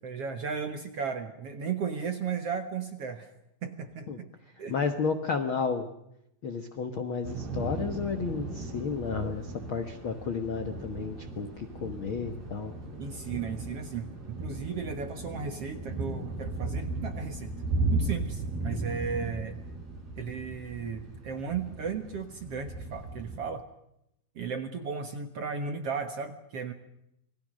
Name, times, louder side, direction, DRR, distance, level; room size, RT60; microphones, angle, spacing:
voice 1, 0.0-3.3 3.6-4.3 4.6-4.7 13.0-17.6 17.9-19.6 20.2-23.7 24.4-26.7, right 6 dB, 55° right, 7 dB, 1.8 m, -35 dB
voice 2, 4.7-5.9 6.4-12.7, left 5 dB, 60° left, 7 dB, 1.3 m, -32 dB
Thunder / Rain, 7.2-23.4, right 2 dB, 85° right, 9.8 m, -36 dB
28.5 x 21.0 x 6.4 m, 0.80 s
omnidirectional pair, 4.4 m